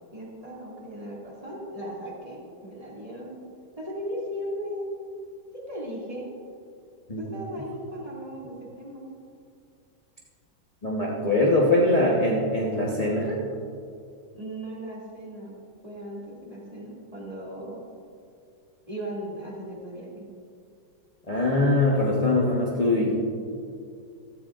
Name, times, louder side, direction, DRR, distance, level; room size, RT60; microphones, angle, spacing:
voice 1, 0.1-3.4 3.8-4.9 5.5-6.3 7.2-9.1 14.3-15.5 15.8-17.8 18.9-20.3, equal, 20° right, -4 dB, 2.3 m, -37 dB
voice 2, 10.8-13.4 21.3-23.1, left 2 dB, 25° left, -4 dB, 1.0 m, -22 dB
15.0 x 13.5 x 2.5 m, 2.4 s
omnidirectional pair, 2.2 m